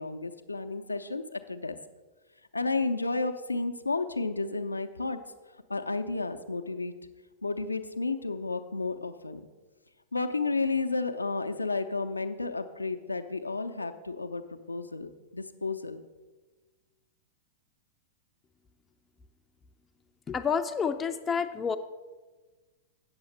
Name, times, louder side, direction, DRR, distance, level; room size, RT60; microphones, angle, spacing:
voice 1, 0.0-1.8 2.5-5.2 5.7-6.9 7.4-9.4 10.1-16.0, left 3 dB, 85° left, 7 dB, 0.6 m, -32 dB
voice 2, 20.3-21.8, left 6 dB, 20° left, 8 dB, 0.4 m, -29 dB
8.8 x 7.0 x 6.4 m, 1.3 s
figure-of-eight pair, 100°, 0 cm